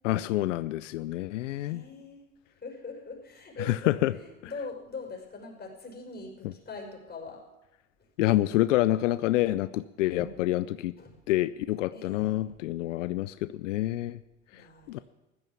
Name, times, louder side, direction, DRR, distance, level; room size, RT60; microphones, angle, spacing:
voice 1, 0.0-1.8 3.6-4.1 8.2-10.9 11.3-14.2 14.9-15.0, left 15 dB, 90° left, 14 dB, 0.5 m, -27 dB
voice 2, 1.5-7.5 10.2-10.3 10.9-11.2 11.9-12.4 14.5-15.0, left 3 dB, 25° left, 1 dB, 5.5 m, -43 dB
15.0 x 13.0 x 7.1 m, 1.0 s
hypercardioid pair, 75°, 36 cm